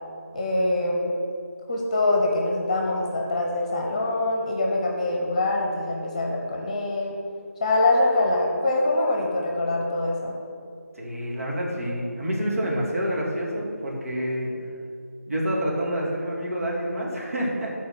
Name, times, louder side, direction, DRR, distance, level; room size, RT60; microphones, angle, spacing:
voice 1, 0.3-1.1 1.7-7.2 7.6-10.3, left 2 dB, 25° left, -1 dB, 1.0 m, -24 dB
voice 2, 11.0-14.5 15.3-17.7, equal, 65° right, -4 dB, 2.5 m, -28 dB
11.0 x 4.3 x 5.9 m, 2.4 s
figure-of-eight pair, 160°, 8 cm